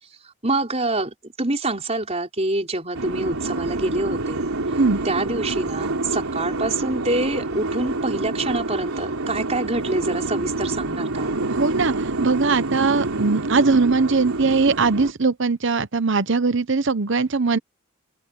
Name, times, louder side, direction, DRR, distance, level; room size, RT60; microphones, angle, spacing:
voice 1, 0.4-4.5 5.0-11.4, right 2 dB, 30° right, 4.7 m, -26 dB
sound 1, 2.9-15.1, right 2 dB, 85° right, 3.3 m, -27 dB
voice 2, 11.5-17.6, right 4 dB, 55° right, 0.8 m, -20 dB
open air
head